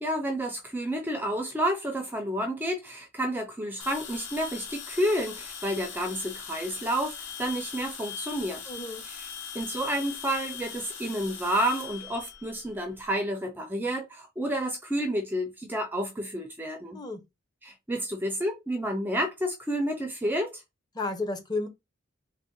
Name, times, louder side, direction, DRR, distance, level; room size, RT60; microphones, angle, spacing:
voice 1, 0.0-8.6 9.1-9.2 9.5-17.0 17.6-20.6, equal, 10° right, 0.4 m, -30 dB
sound 1, 3.8-13.0, left 7 dB, 65° left, 0.9 m, -40 dB
voice 2, 8.7-9.0 16.9-17.2 20.9-21.7, left 2 dB, 20° left, 0.7 m, -32 dB
3.5 x 2.1 x 3.7 m
head